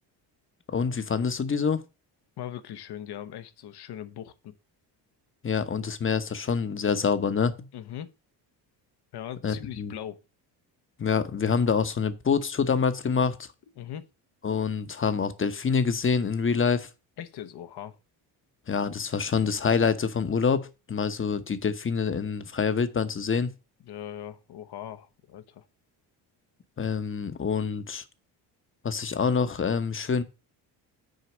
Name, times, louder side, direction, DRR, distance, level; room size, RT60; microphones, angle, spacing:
voice 1, 0.7-1.8 5.4-7.7 9.4-9.9 11.0-13.5 14.4-16.9 18.7-23.5 26.8-28.0 28.8-30.2, left 6 dB, 30° left, 0.9 m, -26 dB
voice 2, 2.4-4.5 7.7-8.1 9.1-10.2 13.8-14.1 17.2-18.0 23.8-25.6, left 10 dB, 60° left, 1.0 m, -40 dB
6.5 x 4.1 x 6.0 m
supercardioid pair, 80°, 44 cm